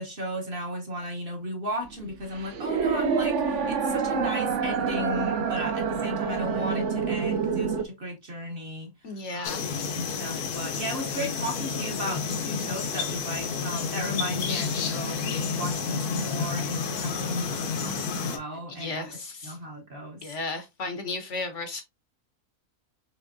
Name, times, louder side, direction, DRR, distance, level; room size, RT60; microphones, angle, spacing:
voice 1, 0.0-8.9 9.3-9.6 9.9-19.2 19.4-20.2, equal, 40° right, 1.0 m, -35 dB
sound 1, 1.8-7.8, right 6 dB, 65° right, 0.8 m, -27 dB
voice 2, 9.0-9.6 17.1-17.2 18.7-19.6 20.2-21.8, left 3 dB, 60° left, 1.0 m, -34 dB
sound 2, 9.4-18.4, left 5 dB, 80° left, 1.4 m, -30 dB
6.0 x 3.1 x 2.6 m
omnidirectional pair, 1.6 m